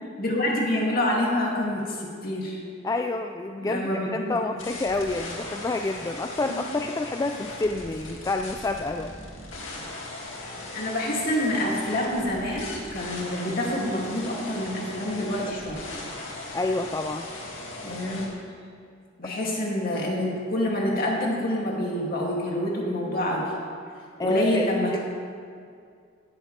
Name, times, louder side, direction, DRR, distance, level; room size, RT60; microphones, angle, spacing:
voice 1, 0.2-2.6 3.6-4.4 6.4-6.6 10.7-15.8 17.8-18.3 19.2-23.5 24.2-25.0, left 1 dB, 50° left, -3 dB, 2.5 m, -27 dB
voice 2, 2.8-9.1 16.5-17.3 19.2-19.3 24.2-25.0, left 2 dB, 20° left, 5 dB, 0.3 m, -28 dB
sound 1, 4.6-18.3, left 2 dB, 90° left, 2.2 m, -39 dB
17.0 x 11.5 x 3.3 m, 2.2 s
head